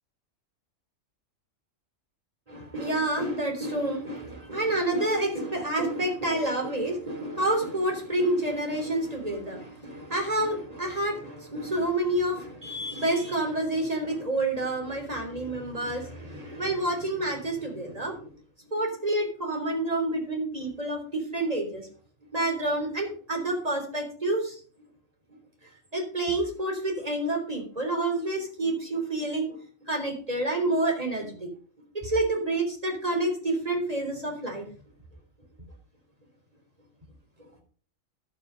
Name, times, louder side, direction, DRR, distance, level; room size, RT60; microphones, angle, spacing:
voice 1, 2.5-18.3 18.6-21.9 22.3-24.6 25.9-31.5 31.9-34.6, right 1 dB, 25° right, 1 dB, 4.0 m, -28 dB
11.5 x 9.4 x 5.3 m, 0.42 s
omnidirectional pair, 1.4 m